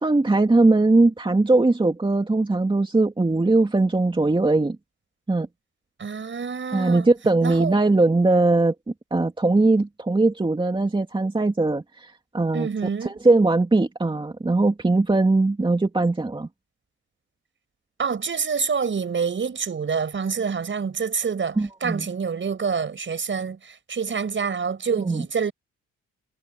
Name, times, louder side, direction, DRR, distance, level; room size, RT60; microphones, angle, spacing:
voice 1, 0.0-4.8 5.3-5.5 6.7-8.7 9.1-12.7 13.0-16.5 21.6-22.1 24.9-25.3, right 2 dB, 15° right, 2.7 m, -20 dB
voice 2, 6.0-7.1 7.4-7.8 12.5-13.2 18.0-25.5, right 6 dB, 40° right, 6.0 m, -27 dB
cardioid pair, 90°, 30 cm